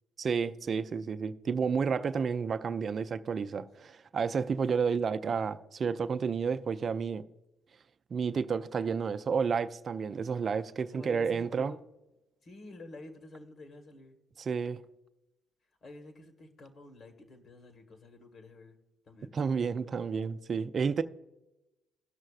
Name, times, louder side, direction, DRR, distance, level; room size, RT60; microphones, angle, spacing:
voice 1, 0.2-7.2 8.1-11.7 14.4-14.8 19.3-21.0, right 6 dB, 50° right, 0.4 m, -31 dB
voice 2, 3.6-3.9 4.3-4.6 10.9-11.8 12.4-14.2 15.8-18.8 19.0-19.3, left 2 dB, 55° left, 1.6 m, -49 dB
16.5 x 6.3 x 2.4 m
hypercardioid pair, 55°, 0 cm